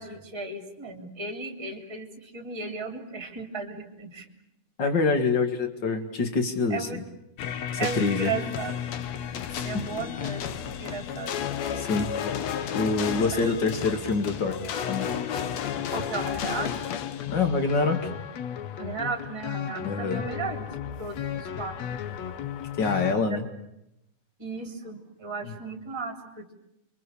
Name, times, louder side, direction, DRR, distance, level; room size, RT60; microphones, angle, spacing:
voice 1, 0.0-4.3 6.7-7.0 7.8-8.8 9.6-10.4 10.8-11.3 13.3-13.5 15.9-16.7 18.8-22.0 22.8-23.4 24.4-26.5, right 4 dB, 5° right, 4 dB, 2.8 m, -35 dB
voice 2, 4.8-6.9 8.0-8.3 9.5-9.8 11.7-12.1 12.7-14.6 14.9-15.1 17.3-18.0 19.8-20.2 22.8-23.5 25.4-25.5, left 4 dB, 35° left, 7 dB, 1.9 m, -25 dB
sound 1, 7.4-23.1, left 9 dB, 85° left, 1.5 m, -33 dB
29.5 x 24.5 x 7.0 m, 0.85 s
omnidirectional pair, 4.9 m